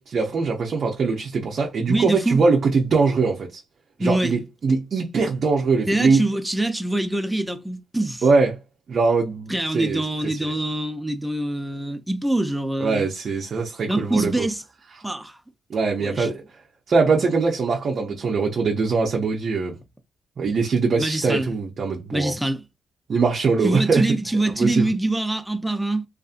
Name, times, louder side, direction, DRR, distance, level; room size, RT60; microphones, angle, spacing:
voice 1, 0.0-3.6 4.0-6.2 8.2-8.5 8.9-10.0 10.3-10.4 12.8-14.5 15.7-16.4 16.9-19.8 20.4-22.3 23.1-24.0 24.6-24.9, right 4 dB, 50° right, 0.5 m, -22 dB
voice 2, 1.9-2.4 4.0-4.4 5.9-8.2 9.5-13.1 13.9-14.6 15.0-15.4 16.0-16.3 21.0-21.5 22.1-22.6 23.6-26.1, right 1 dB, 5° right, 0.5 m, -24 dB
2.6 x 2.4 x 2.4 m
cardioid pair, 90°, 0 cm